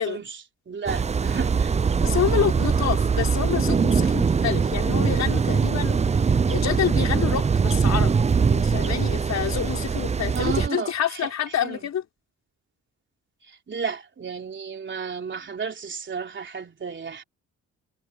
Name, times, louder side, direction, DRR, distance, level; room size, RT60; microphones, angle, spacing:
voice 1, 0.0-1.7 10.3-11.2 11.6-11.8 13.5-17.2, right 6 dB, 40° right, 3.6 m, -33 dB
sound 1, 0.9-10.7, right 5 dB, 20° right, 0.6 m, -22 dB
voice 2, 2.0-6.0 6.5-8.2 8.5-12.0, left 9 dB, 60° left, 4.1 m, -27 dB
cardioid pair, 90°, 30 cm